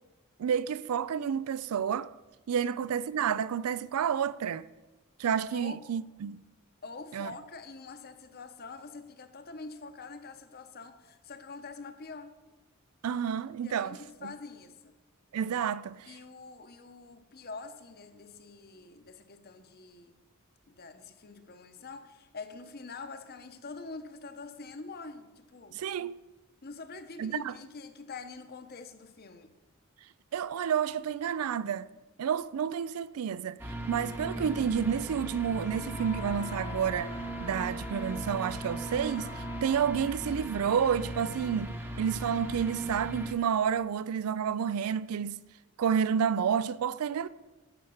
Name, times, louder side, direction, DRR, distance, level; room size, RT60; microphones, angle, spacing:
voice 1, 0.4-2.1 2.5-4.7 5.2-6.4 7.1-7.3 13.0-14.3 15.3-16.1 25.7-26.2 27.2-27.5 30.3-31.9 32.2-45.4 45.8-47.3, right 8 dB, 80° right, 0.4 m, -30 dB
voice 2, 5.5-5.8 6.8-12.4 13.6-14.9 16.1-20.1 20.7-25.8 26.6-29.5, left 4 dB, 45° left, 0.8 m, -45 dB
sound 1, 33.6-43.3, right 1 dB, 10° right, 0.8 m, -38 dB
Wind instrument woodwind instrument, 34.1-40.3, left 4 dB, 15° left, 0.4 m, -45 dB
11.0 x 5.7 x 6.4 m
head